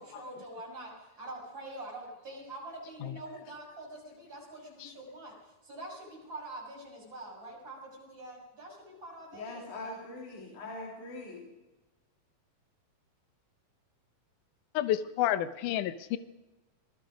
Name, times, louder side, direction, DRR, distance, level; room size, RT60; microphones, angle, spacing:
voice 1, 0.0-9.7, right 1 dB, 30° right, -2 dB, 7.4 m, -45 dB
voice 2, 9.3-11.4, left 2 dB, 55° left, -2 dB, 4.9 m, -42 dB
voice 3, 14.8-16.2, left 12 dB, 70° left, 13 dB, 2.2 m, -29 dB
26.5 x 20.5 x 5.2 m, 1.1 s
omnidirectional pair, 4.4 m